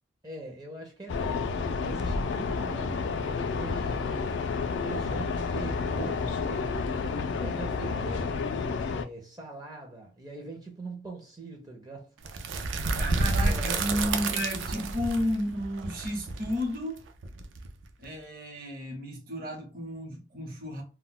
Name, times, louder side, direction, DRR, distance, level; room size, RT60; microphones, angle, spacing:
voice 1, 0.2-4.4 4.8-7.0 7.4-8.4 8.9-12.1 13.1-14.3, right 2 dB, 20° right, 0.4 m, -43 dB
sound 1, 1.1-9.0, left 4 dB, 70° left, 0.3 m, -30 dB
sound 2, 12.2-18.0, right 3 dB, 80° right, 0.4 m, -30 dB
voice 2, 12.9-17.0 18.0-20.8, equal, 50° right, 0.8 m, -32 dB
2.2 x 2.1 x 3.7 m
head